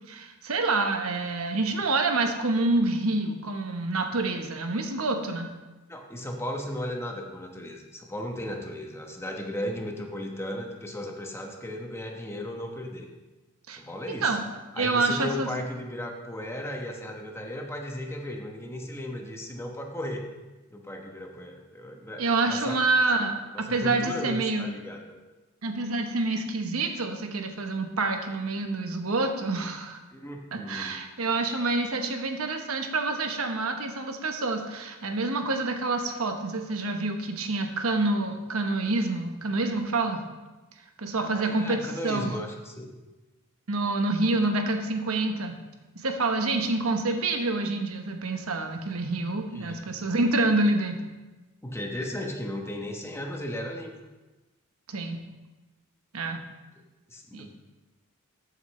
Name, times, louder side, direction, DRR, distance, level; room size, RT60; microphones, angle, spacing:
voice 1, 0.1-5.5 13.7-13.8 14.2-14.4 14.8-15.5 22.2-24.7 25.6-30.0 30.5-40.2 41.0-42.3 43.7-45.5 45.9-51.0 54.9-55.2 56.1-56.4 57.3-57.5, right 2 dB, 90° right, 5 dB, 1.1 m, -27 dB
voice 2, 5.9-13.1 13.7-14.4 14.8-20.3 20.7-22.8 23.5-25.0 30.1-30.9 41.2-43.0 49.5-49.7 51.6-53.9 57.1-57.5, left 1 dB, 10° left, 2 dB, 1.1 m, -36 dB
13.5 x 8.1 x 3.2 m, 1.1 s
head